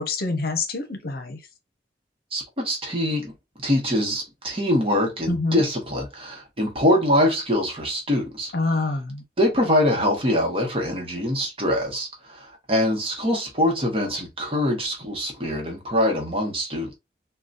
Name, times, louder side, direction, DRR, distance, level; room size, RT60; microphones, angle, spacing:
voice 1, 0.0-1.4 5.3-5.6 8.5-9.2, left 3 dB, 55° left, 0.7 m, -26 dB
voice 2, 2.3-3.3 3.6-8.5 9.4-17.0, left 1 dB, 35° right, 1.0 m, -24 dB
3.8 x 2.2 x 2.5 m
head